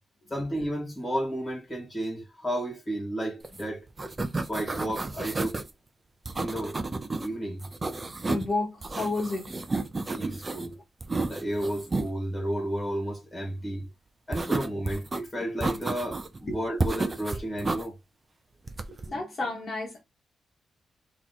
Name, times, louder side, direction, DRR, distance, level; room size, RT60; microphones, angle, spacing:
voice 1, 0.3-3.8 4.5-5.6 6.4-6.8 7.2-7.6 10.2-10.8 11.3-13.9 14.3-18.0, right 1 dB, 10° left, 2.0 m, -32 dB
sound 1, 3.4-3.6 3.9-5.7 6.3-7.3 7.6-8.5 8.8-10.7 11.0-12.1 14.3-15.2 15.6-16.4 16.8-17.8 18.7-19.1, right 3 dB, 20° right, 0.6 m, -31 dB
voice 2, 8.3-9.5 16.5-16.6 19.0-20.0, left 2 dB, 35° left, 1.4 m, -31 dB
3.7 x 3.0 x 4.0 m
wide cardioid pair, 155°, 0 cm